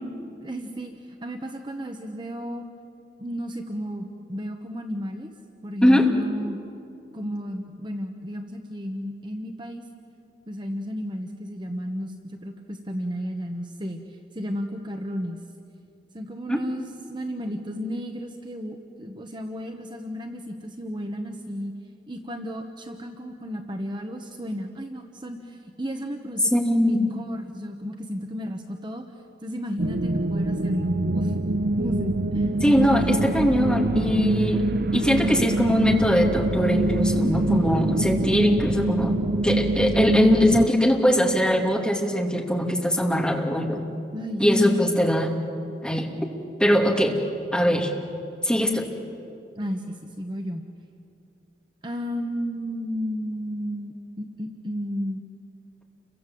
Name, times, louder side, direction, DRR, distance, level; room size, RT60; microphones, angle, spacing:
voice 1, 0.4-2.6 3.2-5.3 5.6-6.6 7.1-9.8 10.5-15.4 16.1-21.7 22.1-29.1 29.4-31.3 31.8-32.5 32.9-33.3 44.1-44.8 49.6-50.6 51.8-55.2, equal, 25° right, 4 dB, 1.2 m, -33 dB
voice 2, 26.5-27.1 32.6-34.6 34.9-39.1 39.4-43.8 44.4-45.3 45.8-46.1 46.6-47.2 47.5-47.9 48.4-48.9, equal, 5° left, 0 dB, 2.7 m, -21 dB
sound 1, 29.8-40.7, right 2 dB, 60° right, 0.6 m, -24 dB
30.0 x 24.0 x 7.7 m, 2.5 s
head